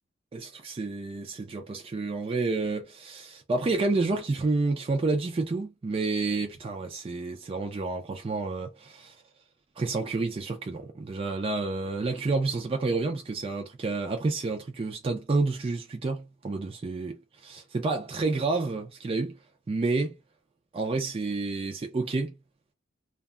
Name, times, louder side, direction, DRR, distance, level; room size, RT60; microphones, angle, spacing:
voice 1, 0.3-9.1 9.8-17.1 17.5-19.4 19.7-20.2 20.7-22.4, right 3 dB, 30° right, 0.4 m, -29 dB
2.2 x 2.0 x 3.5 m
head